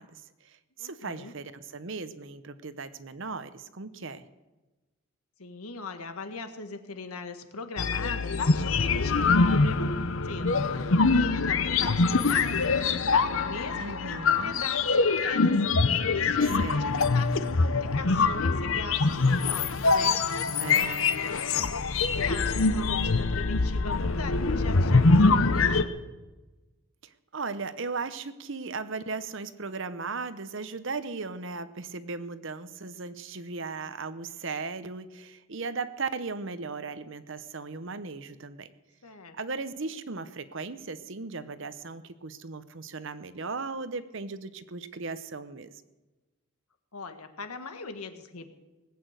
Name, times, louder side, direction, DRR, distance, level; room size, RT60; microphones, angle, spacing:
voice 1, 0.0-4.3 13.8-14.6 16.4-16.9 20.6-21.1 27.0-38.7 39.3-45.7, right 4 dB, 55° right, 13 dB, 0.8 m, -37 dB
voice 2, 0.8-1.3 5.4-9.9 10.2-14.8 15.2-20.2 20.7-21.8 22.1-26.0 39.0-39.3 46.9-48.5, left 3 dB, 80° left, 7 dB, 1.5 m, -40 dB
sound 1, 7.8-25.8, left 4 dB, 60° left, 0.8 m, -24 dB
19.5 x 8.6 x 8.0 m, 1.1 s
head